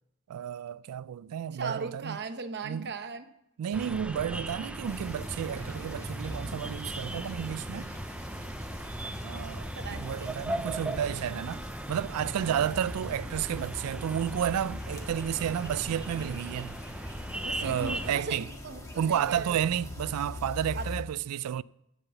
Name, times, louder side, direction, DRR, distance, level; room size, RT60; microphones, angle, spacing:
voice 1, 0.3-2.2 2.6-2.9 3.6-7.9 9.2-16.8 17.6-18.5 19.0-21.6, right 9 dB, 85° right, 0.3 m, -32 dB
voice 2, 1.5-3.2 9.7-10.4 12.4-12.8 17.4-19.6 20.7-20.9, right 4 dB, 50° right, 0.9 m, -38 dB
sound 1, 3.7-18.2, right 1 dB, 5° right, 0.4 m, -38 dB
sound 2, 4.8-21.0, left 2 dB, 15° left, 1.6 m, -43 dB
15.5 x 5.9 x 7.0 m
head